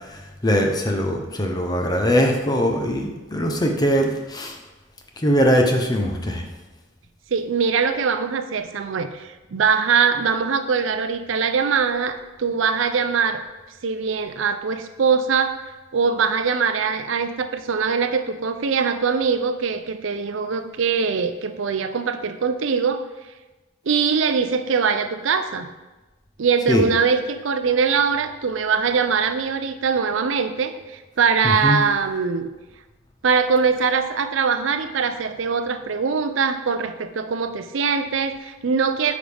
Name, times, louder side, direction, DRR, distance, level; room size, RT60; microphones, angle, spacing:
voice 1, 0.1-4.6 5.2-6.4 26.7-26.8 31.4-31.8, equal, 20° left, 3 dB, 0.7 m, -21 dB
voice 2, 7.3-13.4 13.8-15.6 15.9-23.0 23.9-25.7 26.4-32.5 33.2-39.1, right 5 dB, 70° right, 8 dB, 0.5 m, -22 dB
9.0 x 5.1 x 3.4 m, 1.1 s
head